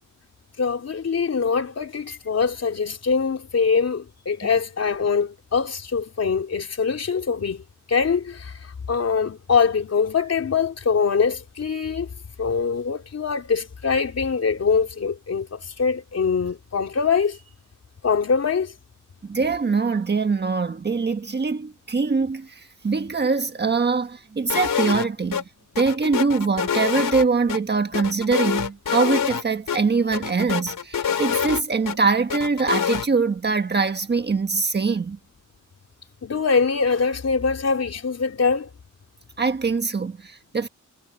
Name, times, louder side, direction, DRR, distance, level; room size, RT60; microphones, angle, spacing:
voice 1, 0.6-7.6 7.9-8.6 8.9-12.1 12.4-17.4 18.0-18.7 36.2-38.7, left 5 dB, 50° left, 3.8 m, -23 dB
voice 2, 19.2-25.4 25.8-35.2 39.4-40.7, right 4 dB, 35° right, 1.5 m, -23 dB
sound 1, 24.5-25.1 25.3-25.4 25.8-27.6 27.9-29.4 29.7-29.8 30.1-32.0 32.3-33.1, left 8 dB, 85° left, 5.5 m, -25 dB
wide cardioid pair, 155°, 32 cm